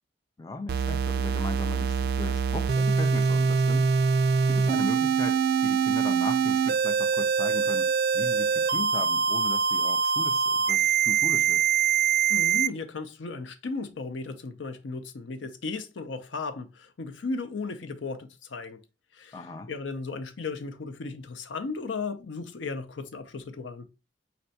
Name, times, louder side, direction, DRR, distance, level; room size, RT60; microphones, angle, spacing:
voice 1, 0.4-3.9 4.2-11.6 19.3-19.7, left 3 dB, 20° left, 0.3 m, -37 dB
sound 1, 0.7-12.7, right 6 dB, 55° right, 0.3 m, -24 dB
voice 2, 12.3-18.8 19.1-19.4 19.7-23.8, left 4 dB, 85° left, 0.6 m, -35 dB
4.2 x 3.3 x 2.7 m
head